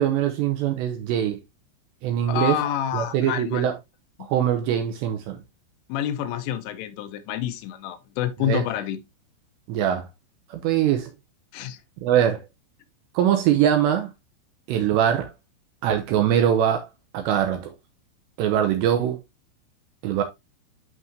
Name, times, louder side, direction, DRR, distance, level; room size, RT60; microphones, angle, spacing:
voice 1, 0.0-1.4 2.0-2.6 2.9-3.7 4.2-5.4 8.4-8.6 9.7-10.1 10.5-11.1 12.0-12.4 13.1-14.1 14.7-15.3 15.8-16.9 17.1-17.7 18.4-19.2 20.0-20.2, right 10 dB, 85° right, 2.6 m, -22 dB
voice 2, 2.3-3.7 5.9-9.0 11.5-11.8, left 10 dB, 85° left, 3.3 m, -28 dB
11.0 x 3.7 x 2.9 m
omnidirectional pair, 5.6 m